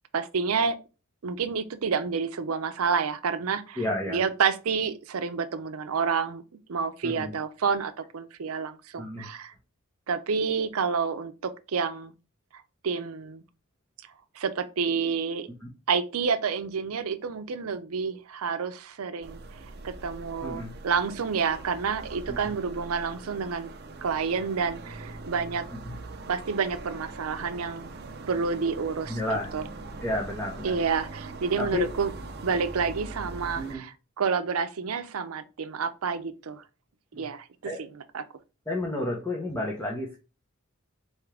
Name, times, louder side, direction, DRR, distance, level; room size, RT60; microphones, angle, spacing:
voice 1, 0.1-0.8 1.2-6.4 6.7-9.5 10.1-12.1 12.5-13.4 14.4-15.5 15.9-19.4 19.8-23.7 24.0-25.6 26.3-27.9 28.3-29.2 29.5-29.6 30.6-32.1 32.4-36.6 37.1-37.9 38.1-38.2, right 5 dB, 90° right, 0.6 m, -29 dB
voice 2, 3.8-4.2 7.0-7.3 9.0-9.3 15.6-15.7 20.4-20.7 25.7-25.9 29.1-29.5 30.0-30.8 31.6-31.9 33.6-33.8 37.1-37.3 37.6-37.8 38.7-40.2, left 1 dB, 10° left, 0.9 m, -31 dB
sound 1, 19.2-33.7, right 2 dB, 50° right, 0.7 m, -41 dB
4.3 x 3.6 x 3.3 m
head